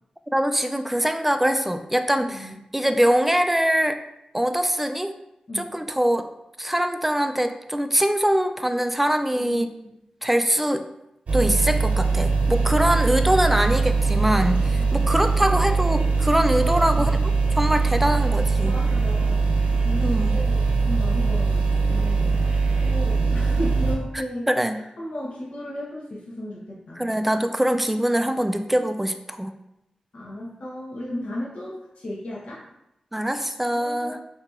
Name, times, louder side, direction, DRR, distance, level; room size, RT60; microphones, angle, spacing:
voice 1, 0.3-4.0 4.3-5.1 5.6-6.3 6.6-9.7 10.2-10.8 11.3-17.2 17.5-18.7 20.0-20.3 24.5-24.8 27.0-29.5 33.1-34.2, equal, 10° right, 8 dB, 0.3 m, -23 dB
voice 2, 2.2-2.5 5.5-5.7 9.3-9.9 14.7-15.2 16.6-17.1 18.6-19.4 19.8-22.4 22.8-24.5 24.7-27.1 30.1-32.6 33.7-34.2, left 1 dB, 70° left, -6 dB, 0.9 m, -35 dB
sound 1, 11.3-24.0, right 4 dB, 80° right, 0.6 m, -21 dB
5.7 x 2.8 x 2.4 m, 0.85 s
cardioid pair, 65°, 2 cm